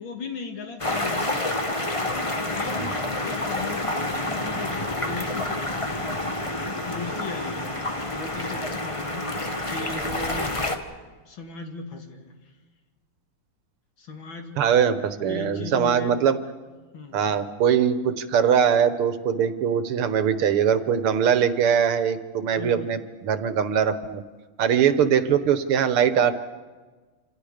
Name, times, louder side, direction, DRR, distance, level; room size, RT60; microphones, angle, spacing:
voice 1, 0.0-1.5 2.0-5.9 6.8-9.3 9.7-10.6 11.3-12.3 14.0-14.6 15.3-16.2 16.9-17.2 22.6-22.9, left 4 dB, 60° left, 4 dB, 3.0 m, -37 dB
sound 1, 0.8-10.8, left 2 dB, 15° left, 1.4 m, -28 dB
voice 2, 14.6-16.4 17.1-24.2 24.6-26.3, right 8 dB, 80° right, 11 dB, 2.1 m, -22 dB
27.5 x 27.5 x 5.1 m, 1.3 s
omnidirectional pair, 2.4 m